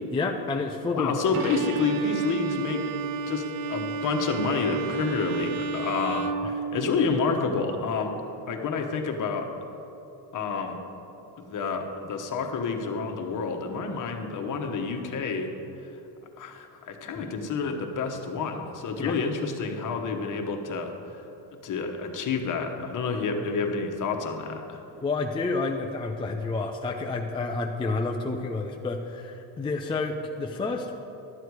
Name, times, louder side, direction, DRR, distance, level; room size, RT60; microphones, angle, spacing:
voice 1, 0.1-1.4 6.4-6.5 19.0-19.1 25.0-30.9, left 3 dB, 10° left, 2 dB, 0.4 m, -29 dB
voice 2, 0.8-2.9 3.3-8.1 8.5-9.5 10.3-10.8 11.4-15.5 16.4-20.9 21.6-24.8, left 4 dB, 45° left, 4 dB, 1.2 m, -29 dB
Bowed string instrument, 1.3-7.3, right 5 dB, 65° right, 0.7 m, -32 dB
12.0 x 8.0 x 4.7 m, 2.9 s
cardioid pair, 120°, 43 cm